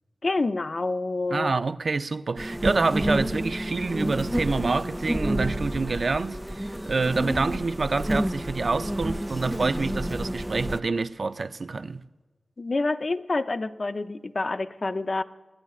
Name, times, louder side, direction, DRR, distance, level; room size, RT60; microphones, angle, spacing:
voice 1, 0.2-1.5 12.6-15.2, left 3 dB, 55° left, 0.6 m, -27 dB
voice 2, 1.3-12.0, right 3 dB, 65° right, 0.4 m, -27 dB
sound 1, 2.4-10.8, equal, 10° right, 0.4 m, -29 dB
26.5 x 11.0 x 2.4 m
cardioid pair, 50°, 0 cm